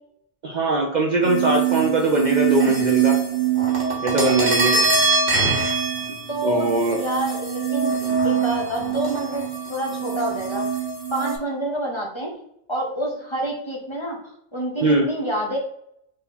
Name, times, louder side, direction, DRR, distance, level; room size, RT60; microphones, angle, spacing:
voice 1, 0.4-3.2 4.0-4.7 6.1-6.2 6.4-7.0 14.8-15.1, right 2 dB, 50° right, 0 dB, 0.6 m, -21 dB
sound 1, 1.2-11.4, right 6 dB, 65° right, 1.5 m, -23 dB
voice 2, 4.5-4.9 6.3-6.7 7.0-8.0 8.2-10.6 11.1-12.3 12.7-14.2 14.5-15.6, right 1 dB, 25° left, -1 dB, 0.9 m, -28 dB
3.7 x 2.8 x 4.1 m, 0.73 s
omnidirectional pair, 1.2 m